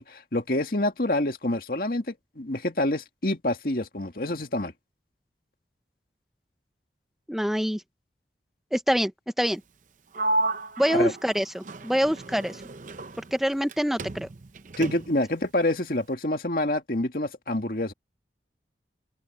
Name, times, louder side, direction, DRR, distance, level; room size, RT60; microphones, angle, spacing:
voice 1, 0.0-4.7 10.9-11.1 14.8-17.9, left 1 dB, 55° left, 2.1 m, -27 dB
voice 2, 7.3-7.8 8.7-9.1 9.4-9.6 10.8-12.6 13.3-14.3, equal, ahead, 0.6 m, -25 dB
Sliding door, 10.1-13.7 14.0-15.3, right 2 dB, 45° right, 0.7 m, -32 dB
open air
head